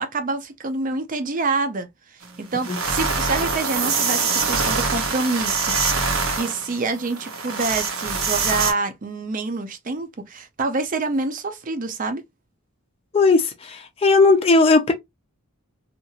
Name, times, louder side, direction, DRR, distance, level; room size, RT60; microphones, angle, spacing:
voice 1, 0.0-1.9 2.4-6.1 6.4-12.2, right 3 dB, 40° right, 0.5 m, -27 dB
sound 1, 2.2-2.3 2.6-8.7, right 4 dB, 70° right, 0.8 m, -24 dB
voice 2, 13.1-14.9, left 3 dB, 25° left, 0.5 m, -17 dB
2.8 x 2.5 x 2.8 m
head